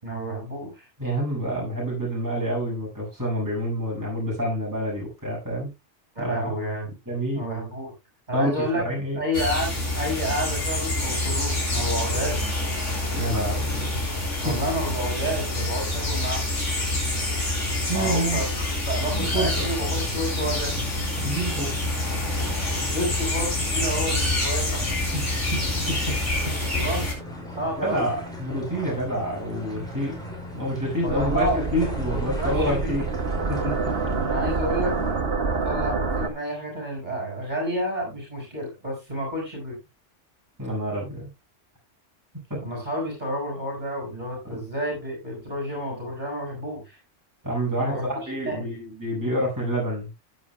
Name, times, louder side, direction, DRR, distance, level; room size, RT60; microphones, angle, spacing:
voice 1, 0.0-0.9 6.1-6.9 7.3-7.9 8.3-8.8 9.2-12.5 14.4-16.4 17.9-20.7 22.8-24.9 26.6-27.1 27.6-28.1 31.0-31.6 32.1-33.1 34.2-34.9 35.5-39.8 42.6-47.0 47.8-48.1 48.4-48.7, equal, 35° right, -1 dB, 6.2 m, -30 dB
voice 2, 1.0-5.7 6.2-6.5 7.1-7.4 8.3-9.2 13.1-13.9 14.3-14.6 17.9-18.4 19.1-19.6 21.2-21.7 25.1-25.2 25.5-26.1 26.4-26.5 27.8-30.2 30.5-33.1 33.5-33.7 40.6-41.3 42.5-42.6 44.4-44.6 47.4-50.1, right 1 dB, 15° right, -3 dB, 6.4 m, -28 dB
sound 1, 9.3-27.1, left 1 dB, 75° left, 4.2 m, -27 dB
sound 2, 19.0-35.1, left 1 dB, 5° left, 5.5 m, -38 dB
sound 3, 31.1-36.3, right 4 dB, 50° right, 1.5 m, -27 dB
16.0 x 8.9 x 2.2 m, 0.24 s
omnidirectional pair, 1.3 m